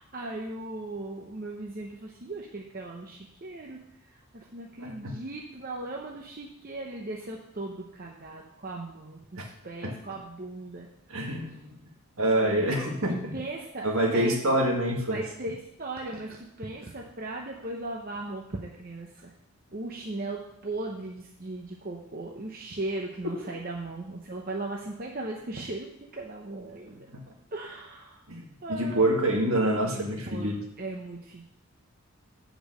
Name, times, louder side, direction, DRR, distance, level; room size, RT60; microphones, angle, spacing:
voice 1, 0.0-10.9 12.2-12.8 13.1-14.4 15.1-19.3 19.7-27.1 27.5-28.2 28.6-29.2 29.8-30.5 30.8-31.4, right 2 dB, 40° right, 0 dB, 0.8 m, -37 dB
voice 2, 4.8-5.1 9.4-9.5 9.8-9.9 11.1-11.8 12.2-13.3 13.8-15.2 27.1-27.2 28.3-30.6, right 1 dB, 70° right, 0 dB, 1.9 m, -26 dB
8.5 x 5.2 x 6.4 m, 0.75 s
head